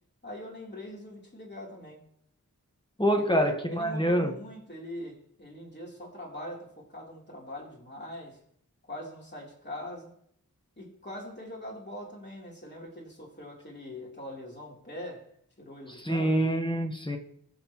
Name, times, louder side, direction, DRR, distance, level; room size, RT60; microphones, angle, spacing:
voice 1, 0.2-2.0 3.2-8.4 8.9-10.2 10.8-15.3 15.6-16.4, left 1 dB, 30° left, 3.7 m, -42 dB
voice 2, 3.0-4.3 15.9-17.2, equal, 15° left, 1.5 m, -26 dB
23.0 x 8.0 x 3.1 m
wide cardioid pair, 60°, 34 cm